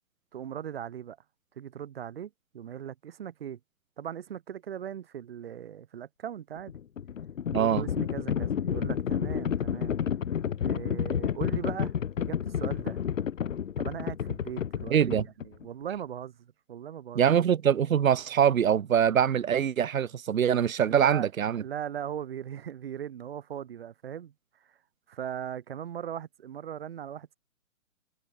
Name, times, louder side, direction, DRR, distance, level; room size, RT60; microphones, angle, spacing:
voice 1, 0.3-1.2 1.6-3.6 4.0-6.8 7.5-10.0 10.6-13.0 13.8-17.2 20.9-21.3 21.6-24.3 24.6-24.8 25.1-27.3, right 9 dB, 45° right, 3.1 m, -39 dB
Livestock farm animals working animals, 6.6-15.6, left 8 dB, 70° left, 0.6 m, -30 dB
voice 2, 7.5-7.8 14.9-15.3 17.1-21.6, right 8 dB, 80° right, 0.6 m, -24 dB
figure-of-eight pair, 135°, 41 cm